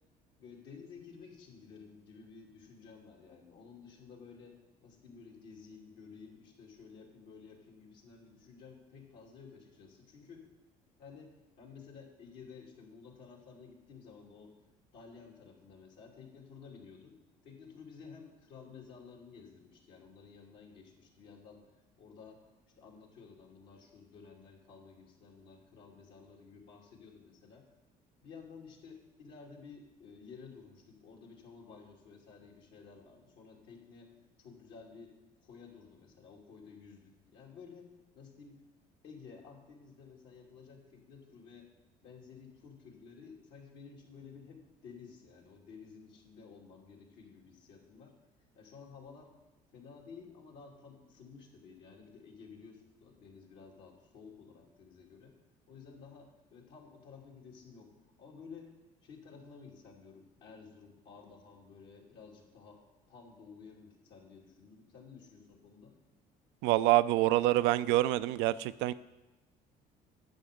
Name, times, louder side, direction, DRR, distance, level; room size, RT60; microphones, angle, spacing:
voice 1, 0.4-10.5 11.0-14.5 14.9-17.2 17.4-21.7 22.0-27.7 28.2-34.1 34.4-38.6 39.0-41.7 42.0-48.2 48.5-49.3 49.7-55.4 55.7-58.7 59.0-66.0, left 5 dB, 70° left, -1 dB, 2.5 m, -53 dB
voice 2, 66.6-68.9, right 16 dB, 75° right, 14 dB, 0.4 m, -26 dB
10.5 x 7.6 x 5.2 m, 1.1 s
supercardioid pair, 70°, 19 cm